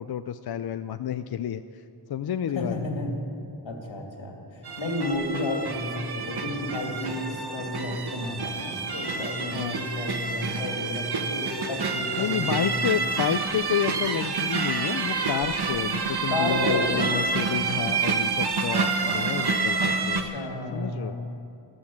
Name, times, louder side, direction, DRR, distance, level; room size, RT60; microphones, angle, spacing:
voice 1, 0.0-1.8 2.1-2.8 9.5-9.8 12.2-20.2 20.7-21.1, left 9 dB, 60° left, 10 dB, 0.5 m, -30 dB
voice 2, 2.5-3.2 3.6-13.0 16.3-17.1 19.8-21.3, left 2 dB, 85° left, 1 dB, 2.6 m, -32 dB
sound 1, 4.6-20.2, right 4 dB, 60° right, 1.2 m, -28 dB
13.5 x 12.5 x 7.3 m, 2.7 s
wide cardioid pair, 105°, 44 cm